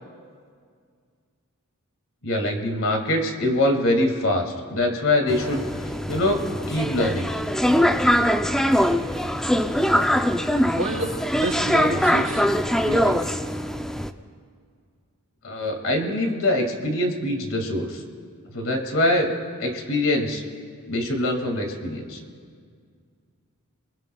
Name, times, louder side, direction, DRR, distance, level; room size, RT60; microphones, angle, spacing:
voice 1, 2.2-6.4 6.7-7.3 15.4-18.0 18.5-19.3 19.6-20.4 20.9-22.2, left 1 dB, 65° left, 3 dB, 2.0 m, -24 dB
sound 1, 5.3-14.1, equal, ahead, 0.4 m, -22 dB
voice 2, 10.7-12.5 12.8-13.3, right 2 dB, 85° right, 0 dB, 2.9 m, -29 dB
27.0 x 21.0 x 2.3 m, 2.1 s
head